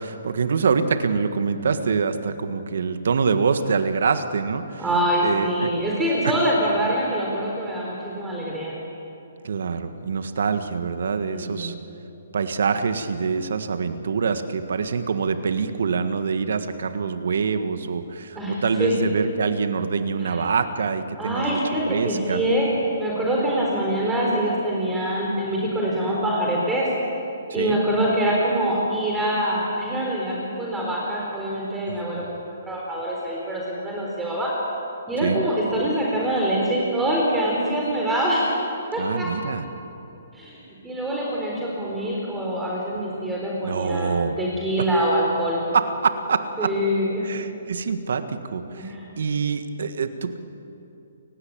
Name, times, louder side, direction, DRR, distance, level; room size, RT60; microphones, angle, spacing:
voice 1, 0.0-4.8 5.2-5.8 9.4-11.7 12.3-21.6 21.9-22.4 27.5-27.8 31.9-32.3 35.2-35.4 39.0-39.7 43.6-44.4 44.8-44.9 45.7-46.7 47.2-50.4, right 5 dB, 70° right, 9 dB, 1.6 m, -25 dB
voice 2, 4.8-8.7 11.3-11.7 18.4-18.9 20.2-20.4 21.2-22.7 23.0-26.9 27.5-32.2 32.6-34.5 35.1-38.6 38.9-39.3 40.3-45.6 46.6-47.2 48.7-49.1, right 1 dB, 10° right, -4 dB, 4.1 m, -24 dB
29.0 x 17.0 x 8.8 m, 2.9 s
hypercardioid pair, 155°, 0 cm